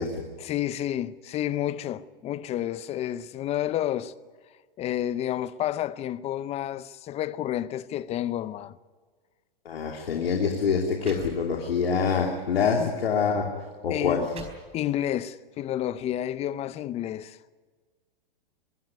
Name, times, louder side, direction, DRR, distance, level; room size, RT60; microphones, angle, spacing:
voice 1, 0.4-4.1 4.8-8.7 12.8-12.9 13.9-14.5 14.7-17.4, left 12 dB, 20° left, 0.8 m, -30 dB
voice 2, 9.6-13.5 13.8-14.3, left 6 dB, 80° left, 3.0 m, -25 dB
sound 1, 9.7-9.9 10.6-10.7 11.0-11.9 12.4-12.6 13.4-13.5 14.0-15.1, right 4 dB, 20° right, 4.4 m, -47 dB
23.5 x 16.0 x 9.6 m
hypercardioid pair, 135°, 29 cm